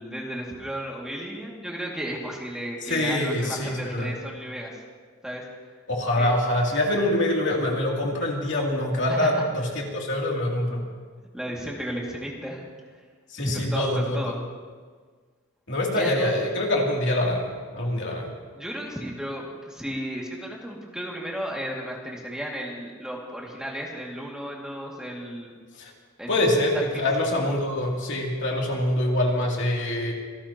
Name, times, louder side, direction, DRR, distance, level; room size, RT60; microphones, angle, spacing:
voice 1, 0.0-4.8 5.2-5.4 6.1-6.3 9.1-9.4 11.3-12.6 13.4-14.3 15.9-16.3 18.6-25.5 26.2-26.4, equal, 5° right, -3 dB, 2.3 m, -34 dB
voice 2, 2.8-4.1 5.9-10.8 13.3-14.3 15.7-17.5 17.7-18.3 25.8-25.9 26.3-30.1, left 1 dB, 55° left, -2 dB, 3.0 m, -25 dB
26.5 x 18.0 x 3.0 m, 1.5 s
head